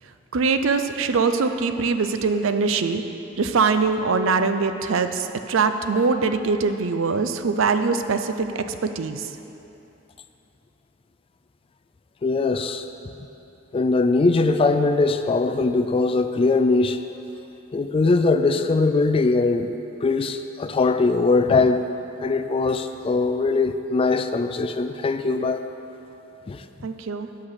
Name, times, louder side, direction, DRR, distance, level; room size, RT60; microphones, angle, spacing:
voice 1, 0.3-3.0 3.4-9.3 26.8-27.3, right 4 dB, 70° right, 9 dB, 0.5 m, -22 dB
voice 2, 12.2-12.9 13.7-17.0 17.7-19.7 20.0-21.9 22.2-25.7 26.5-26.6, left 3 dB, 30° left, 9 dB, 0.3 m, -21 dB
8.7 x 5.8 x 6.6 m, 3.0 s
head